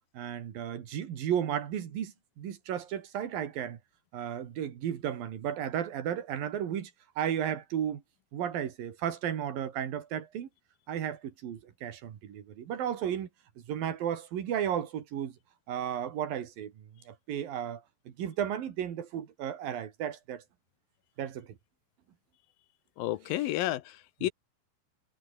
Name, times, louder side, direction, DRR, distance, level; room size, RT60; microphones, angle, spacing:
voice 1, 0.1-3.8 4.1-6.9 7.2-8.0 8.3-10.5 10.9-13.3 13.7-15.4 15.7-20.4 21.2-21.5, right 9 dB, 80° right, 3.9 m, -34 dB
voice 2, 23.0-24.3, left 15 dB, 85° left, 2.8 m, -31 dB
omnidirectional pair, 4.0 m